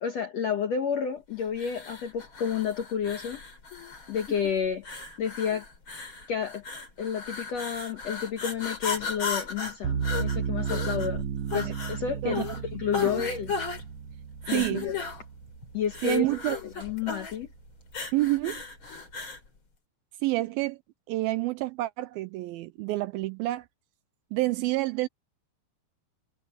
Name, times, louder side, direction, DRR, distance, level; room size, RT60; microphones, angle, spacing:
voice 1, 0.0-3.4 4.1-4.9 5.2-5.6 6.3-6.6 7.0-11.2 11.5-12.5 12.7-13.5 14.5-15.0 15.7-16.3 16.8-17.5, left 7 dB, 65° left, 1.7 m, -30 dB
sound 1, 1.5-19.5, left 5 dB, 30° left, 3.8 m, -36 dB
sound 2, 9.8-16.9, right 8 dB, 65° right, 1.8 m, -34 dB
voice 2, 12.2-12.6 13.0-13.1 14.5-14.9 16.0-16.6 18.1-18.6 20.2-20.8 21.1-23.7 24.3-25.1, right 18 dB, 80° right, 2.2 m, -28 dB
omnidirectional pair, 4.6 m